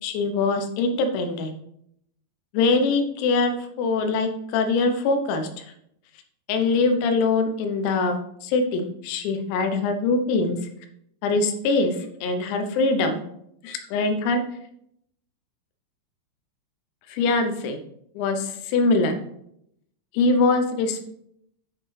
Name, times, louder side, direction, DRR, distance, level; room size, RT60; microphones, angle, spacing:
voice 1, 0.0-1.5 2.5-5.7 6.5-10.6 11.2-13.2 13.6-14.4 17.1-17.8 18.2-19.2 20.1-21.1, left 3 dB, 85° left, 6 dB, 3.8 m, -23 dB
10.5 x 6.0 x 4.9 m, 0.75 s
omnidirectional pair, 6.0 m